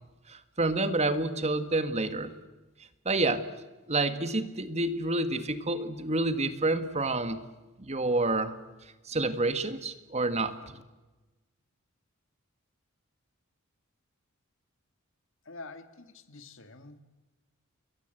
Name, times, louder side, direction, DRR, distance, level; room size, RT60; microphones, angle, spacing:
voice 1, 0.3-2.3 3.0-3.4 3.9-7.4 7.8-8.5 9.1-10.5, right 2 dB, 30° right, 11 dB, 1.7 m, -28 dB
voice 2, 15.5-17.0, left 3 dB, 60° left, 10 dB, 1.9 m, -47 dB
29.5 x 21.5 x 7.8 m, 1.1 s
head